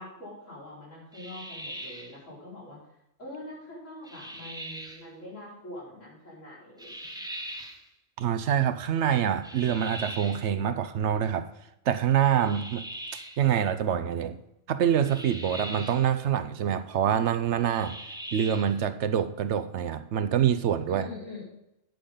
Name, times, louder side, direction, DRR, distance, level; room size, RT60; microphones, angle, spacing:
voice 1, 0.0-2.8 3.2-6.9 20.9-21.4, left 1 dB, 80° left, -6 dB, 5.4 m, -43 dB
sound 1, 1.1-2.2 4.0-5.0 6.8-7.8 9.4-10.5 12.4-13.4 15.0-16.1 17.7-18.8, equal, 5° right, 0.9 m, -40 dB
voice 2, 8.2-11.5 11.9-12.8 13.1-14.4 14.7-18.0 18.3-21.1, right 9 dB, 70° right, 11 dB, 0.9 m, -26 dB
10.5 x 9.6 x 3.8 m, 0.85 s
omnidirectional pair, 1.3 m